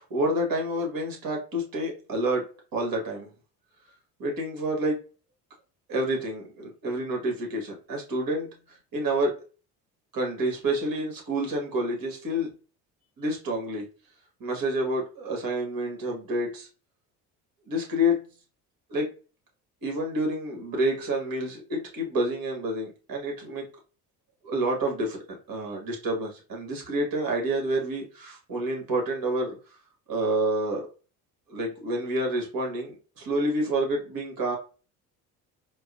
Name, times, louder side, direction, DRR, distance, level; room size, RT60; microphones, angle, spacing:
voice 1, 0.0-3.3 4.2-5.0 5.9-9.4 10.1-12.5 13.2-13.8 14.4-16.7 17.7-18.2 18.9-19.1 19.8-23.7 24.4-29.5 30.1-30.9 31.5-34.6, right 1 dB, 45° right, 0 dB, 1.6 m, -28 dB
4.5 x 2.1 x 2.5 m, 0.35 s
hypercardioid pair, 60°, 46 cm